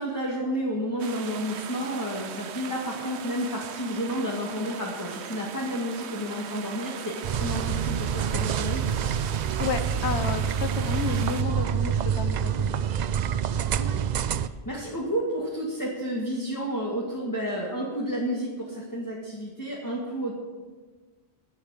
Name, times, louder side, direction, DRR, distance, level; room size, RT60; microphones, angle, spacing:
voice 1, 0.0-8.8 13.8-20.3, equal, 20° left, -4 dB, 1.9 m, -31 dB
sound 1, 1.0-11.4, right 8 dB, 85° right, 1.0 m, -39 dB
sound 2, 7.2-14.5, right 8 dB, 55° right, 0.5 m, -27 dB
voice 2, 9.6-12.9, left 6 dB, 80° left, 10 dB, 1.2 m, -32 dB
11.0 x 8.2 x 9.8 m, 1.4 s
omnidirectional pair, 1.1 m